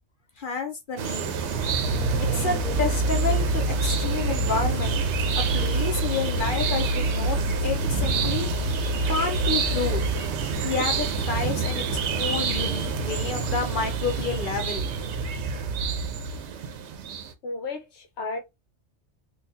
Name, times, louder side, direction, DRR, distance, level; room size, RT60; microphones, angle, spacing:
voice 1, 0.4-1.3 1.7-1.8 2.2-5.0 5.3-10.0 10.6-11.8 12.1-14.9, left 5 dB, 55° left, 0.7 m, -30 dB
sound 1, 1.0-17.3, right 7 dB, 75° right, 0.9 m, -30 dB
sound 2, 1.3-16.7, right 4 dB, 50° right, 0.6 m, -32 dB
sound 3, 1.8-13.2 13.5-13.8, left 2 dB, ahead, 1.4 m, -30 dB
voice 2, 17.4-18.4, left 3 dB, 70° left, 1.0 m, -33 dB
3.8 x 2.3 x 2.6 m
omnidirectional pair, 1.2 m